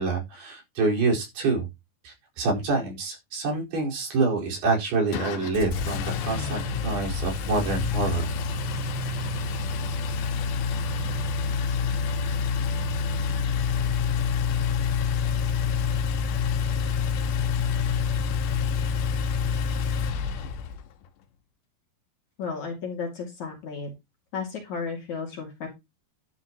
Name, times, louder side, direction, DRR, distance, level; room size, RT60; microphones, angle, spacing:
voice 1, 0.0-1.7 2.0-8.3, right 3 dB, 65° right, -1 dB, 6.6 m, -26 dB
Engine, 5.1-20.8, left 5 dB, 85° left, 3.5 m, -27 dB
voice 2, 22.4-23.9 24.3-25.7, left 5 dB, 50° left, 2 dB, 3.5 m, -33 dB
12.0 x 9.9 x 3.0 m, 0.22 s
omnidirectional pair, 4.9 m